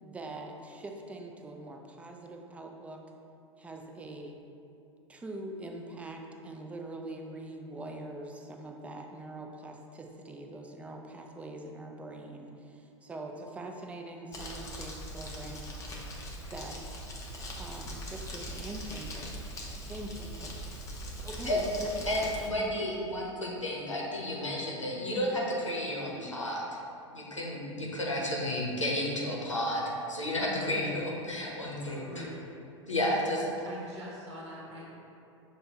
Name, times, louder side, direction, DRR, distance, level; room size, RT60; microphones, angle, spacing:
voice 1, 0.0-3.0 3.6-4.4 5.1-15.7 16.5-16.8 17.6-19.3 19.8-20.6 21.2-21.9 23.9-24.0, right 2 dB, 10° right, 2 dB, 0.3 m, -43 dB
Crumpling crinkling, 14.3-22.5, equal, 20° left, 0.7 m, -41 dB
voice 2, 22.1-26.6 27.1-32.2 32.9-33.4, left 1 dB, 90° left, -4 dB, 0.7 m, -32 dB
voice 3, 32.0-32.4 32.9-33.3 33.6-34.8, right 1 dB, 40° right, -4 dB, 1.0 m, -43 dB
6.4 x 2.2 x 3.4 m, 2.6 s
figure-of-eight pair, 90°, 16 cm